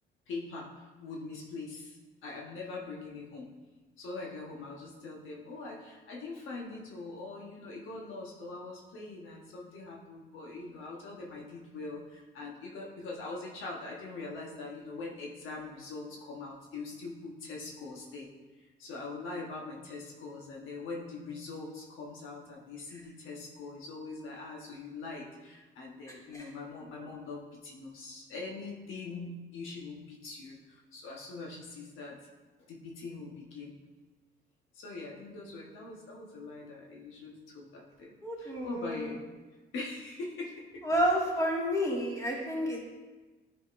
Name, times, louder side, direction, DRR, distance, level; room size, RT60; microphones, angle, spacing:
voice 1, 0.3-0.7 1.0-3.5 4.0-18.3 18.8-32.2 32.7-33.7 34.7-39.2 39.7-40.8 42.3-42.4, left 3 dB, 85° left, -2 dB, 1.2 m, -42 dB
voice 2, 38.2-39.2 40.8-42.8, equal, 15° left, -3 dB, 1.9 m, -30 dB
9.6 x 5.1 x 2.6 m, 1.2 s
cardioid pair, 90°, 20 cm